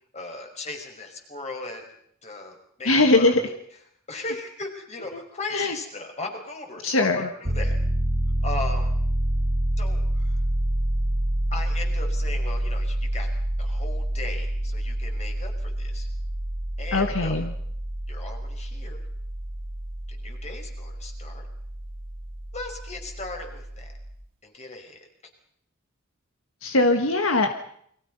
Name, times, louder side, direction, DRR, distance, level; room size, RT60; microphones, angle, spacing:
voice 1, 0.1-1.8 2.2-3.5 4.1-7.8 8.4-8.9 9.8-10.4 11.5-13.3 13.6-16.1 16.8-17.4 18.1-19.0 20.1-21.5 22.5-23.9 24.4-25.1, left 2 dB, 35° left, 3 dB, 5.6 m, -37 dB
voice 2, 2.8-3.4 5.1-5.2 5.5-5.8 6.8-7.3 16.9-17.5 26.6-27.5, left 2 dB, 75° left, 6 dB, 1.7 m, -21 dB
Piano, 7.5-24.1, right 1 dB, 70° right, 3.7 m, -28 dB
29.5 x 23.5 x 5.5 m, 0.67 s
head